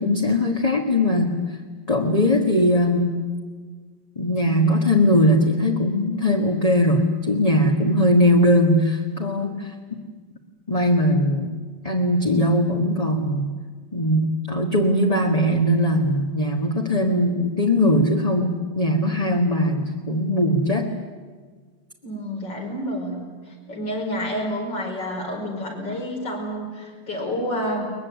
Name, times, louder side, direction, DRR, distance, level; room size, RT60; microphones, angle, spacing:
voice 1, 0.0-1.4 1.9-3.2 4.1-10.0 10.7-11.5 11.8-13.4 13.9-20.9, left 1 dB, 20° left, 0 dB, 1.6 m, -20 dB
voice 2, 22.0-23.2 23.7-27.9, equal, 70° left, 0 dB, 5.8 m, -29 dB
22.5 x 21.0 x 9.6 m, 1.5 s
omnidirectional pair, 2.0 m